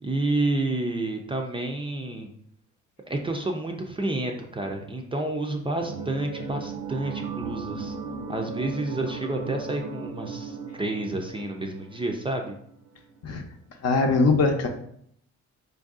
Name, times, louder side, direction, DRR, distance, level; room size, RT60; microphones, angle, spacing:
voice 1, 0.0-2.3 3.1-8.0 8.3-12.6, right 2 dB, 20° right, 3 dB, 0.4 m, -29 dB
sound 1, 5.8-12.8 13.1-13.2, right 4 dB, 75° right, 0.6 m, -36 dB
voice 2, 13.8-14.7, left 3 dB, 55° left, 4 dB, 0.7 m, -21 dB
4.5 x 2.6 x 2.4 m, 0.67 s
cardioid pair, 90°, 30 cm